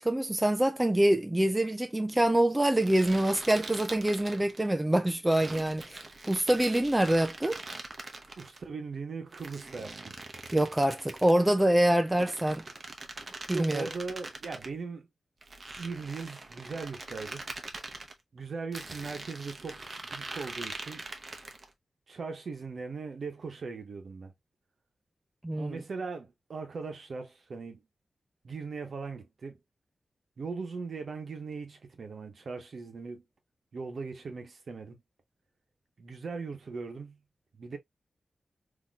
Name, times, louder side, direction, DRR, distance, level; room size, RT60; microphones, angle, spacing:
voice 1, 0.0-6.0 6.3-7.6 10.5-12.6 13.5-13.9 25.4-25.8, right 1 dB, 10° right, 0.4 m, -25 dB
sound 1, 2.8-4.7 5.3-8.6 9.3-11.4 12.0-14.7 15.4-18.1 18.7-21.7, right 3 dB, 40° right, 0.7 m, -43 dB
voice 2, 8.4-10.1 13.5-15.1 15.8-17.5 18.3-21.0 22.1-24.3 25.5-27.8 28.4-29.6 30.4-33.2 33.7-35.0 36.0-37.2 37.5-37.8, right 4 dB, 60° right, 1.0 m, -39 dB
4.1 x 2.8 x 2.3 m
wide cardioid pair, 140°, 0 cm